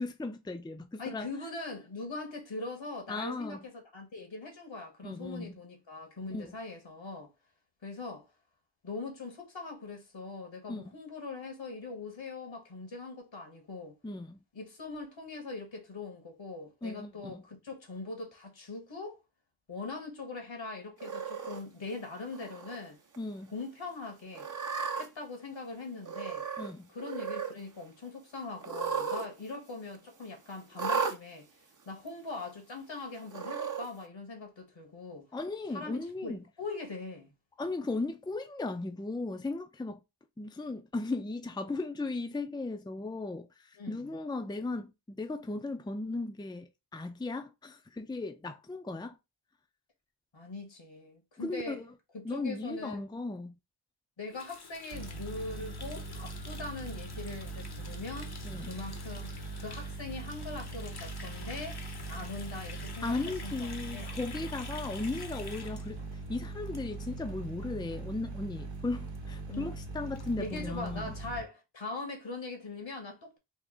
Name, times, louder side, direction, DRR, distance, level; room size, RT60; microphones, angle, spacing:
voice 1, 0.0-1.3 3.1-3.6 5.0-5.5 6.3-6.5 10.7-10.9 14.0-14.4 16.8-17.4 23.2-23.5 26.6-26.9 35.3-36.4 37.6-40.0 40.4-49.1 51.4-51.9 52.2-53.6 58.4-58.8 63.0-71.2, left 2 dB, 10° left, 0.5 m, -36 dB
voice 2, 1.0-7.3 7.8-8.3 8.8-14.0 14.5-19.2 19.7-23.0 23.5-24.5 24.9-26.5 26.9-31.5 31.8-35.3 35.7-37.3 43.8-44.1 50.3-51.8 52.1-53.0 54.2-58.3 58.6-61.8 62.1-63.2 63.4-64.2 69.5-69.7 70.4-73.4, left 3 dB, 80° left, 1.6 m, -41 dB
Cat, 21.0-21.6 22.3-22.8 23.1-23.2 24.3-25.1 26.0-26.7 27.0-27.5 28.6-29.3 29.5-29.6 30.7-31.2 32.1-32.2 33.3-33.9, right 5 dB, 45° right, 0.8 m, -34 dB
Water tap faucet, 54.3-67.3 67.6-67.8 68.1-68.5 68.7-68.8 69.1-69.2 69.5-69.6 69.8-70.9, left 4 dB, 55° left, 0.9 m, -49 dB
sound 1, 54.9-71.4, right 3 dB, 75° right, 0.9 m, -41 dB
3.5 x 2.6 x 3.8 m
wide cardioid pair, 65°, 45 cm